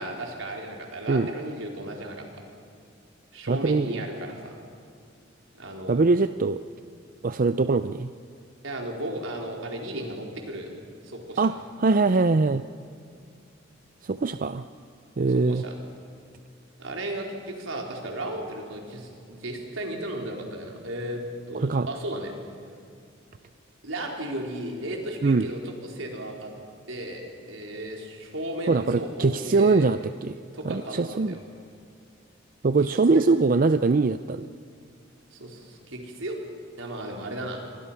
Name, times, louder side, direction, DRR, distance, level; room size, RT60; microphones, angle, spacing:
voice 1, 0.0-2.3 3.3-4.6 5.6-6.0 8.6-10.7 11.0-11.4 15.3-15.7 16.8-21.2 21.5-22.3 23.8-26.5 26.9-29.9 30.5-31.4 33.1-33.2 35.3-36.4 36.8-37.6, right 1 dB, 80° right, 1 dB, 4.4 m, -35 dB
voice 2, 3.5-3.9 5.9-6.6 7.2-8.1 11.4-12.6 14.0-14.6 15.2-15.6 21.6-21.9 25.2-25.5 28.7-30.4 30.6-31.4 32.6-34.5, right 3 dB, 45° right, 11 dB, 0.5 m, -22 dB
28.0 x 23.5 x 5.8 m, 2.3 s
head